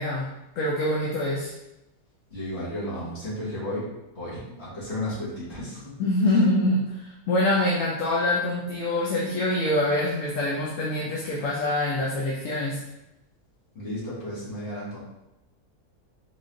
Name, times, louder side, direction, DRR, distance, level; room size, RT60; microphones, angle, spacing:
voice 1, 0.0-1.5 6.0-12.8, left 1 dB, 65° left, -4 dB, 0.9 m, -25 dB
voice 2, 2.3-3.8 4.2-5.9 13.8-15.0, left 1 dB, 45° left, -8 dB, 1.7 m, -33 dB
3.8 x 3.1 x 2.6 m, 0.91 s
omnidirectional pair, 1.6 m